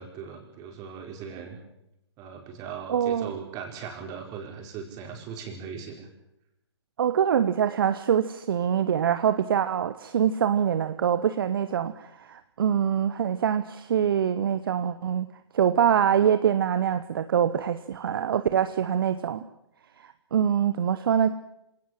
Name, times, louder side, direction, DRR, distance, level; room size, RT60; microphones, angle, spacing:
voice 1, 0.0-1.6 2.2-6.1, right 6 dB, 25° right, 3 dB, 5.0 m, -39 dB
voice 2, 2.9-3.3 7.0-15.3 15.5-19.5 20.0-21.3, right 8 dB, 50° right, 12 dB, 1.1 m, -24 dB
26.5 x 18.0 x 7.6 m, 0.84 s
figure-of-eight pair, 130°, 15 cm